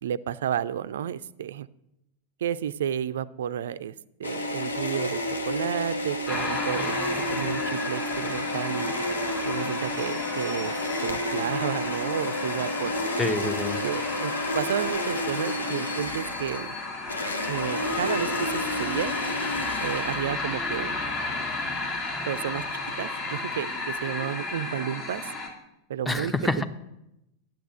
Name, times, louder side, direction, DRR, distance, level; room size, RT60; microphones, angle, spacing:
voice 1, 0.0-1.7 2.4-8.9 9.4-10.7 11.0-12.9 13.8-16.8 17.5-19.1 19.8-21.0 22.3-22.6 23.0-25.3 25.9-26.6, right 9 dB, 60° right, 16 dB, 0.5 m, -31 dB
sound 1, 4.2-20.5, left 1 dB, 75° left, 1.6 m, -31 dB
sound 2, 6.3-25.5, left 3 dB, 35° left, 3.3 m, -33 dB
voice 2, 13.2-13.8 26.1-26.6, left 2 dB, 10° left, 8 dB, 1.0 m, -27 dB
11.5 x 9.1 x 7.9 m, 0.86 s
figure-of-eight pair, 90°, 0 cm